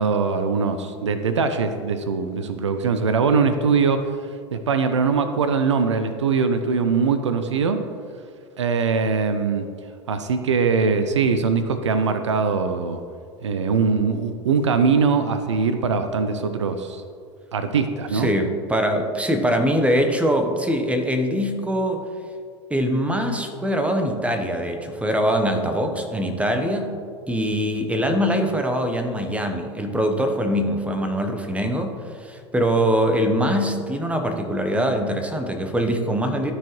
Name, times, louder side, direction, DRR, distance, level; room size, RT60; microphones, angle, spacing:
voice 1, 0.0-4.1 4.5-7.8 8.6-9.7 10.1-13.0 13.4-17.0 17.5-18.3, right 5 dB, 85° right, 9 dB, 0.5 m, -22 dB
voice 2, 18.1-22.0 22.7-26.9 27.3-36.5, equal, 10° right, 5 dB, 0.9 m, -23 dB
12.5 x 4.7 x 3.1 m, 2.2 s
hypercardioid pair, 80°, 15 cm